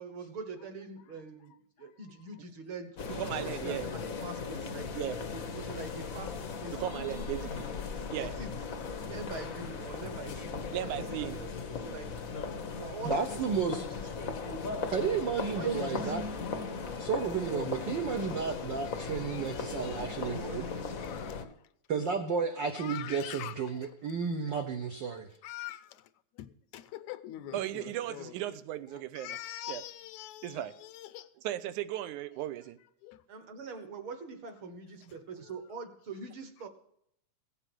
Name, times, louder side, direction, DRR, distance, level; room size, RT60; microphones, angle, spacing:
voice 1, 0.0-3.0 3.2-6.8 7.1-7.7 8.1-8.5 9.0-12.1 12.8-14.8 15.5-16.1 27.5-27.6 33.3-36.7, right 3 dB, 55° right, 1.7 m, -44 dB
sound 1, 3.0-21.4, left 5 dB, 60° left, 0.8 m, -38 dB
voice 2, 3.1-3.9 5.0-5.2 6.8-7.6 8.1-8.3 10.7-11.4 27.5-29.4 29.7-29.8 30.4-30.7 31.4-32.8, right 13 dB, 90° right, 2.2 m, -36 dB
voice 3, 13.0-13.9 14.9-16.2 17.0-20.7 21.9-25.3, right 6 dB, 70° right, 1.0 m, -32 dB
voice 4, 18.9-20.4 21.0-21.7 22.7-23.9 25.4-28.3 28.9-31.3 33.0-33.2 35.1-35.2 35.4-35.5, left 13 dB, 80° left, 2.0 m, -45 dB
16.0 x 7.9 x 6.1 m
omnidirectional pair, 3.4 m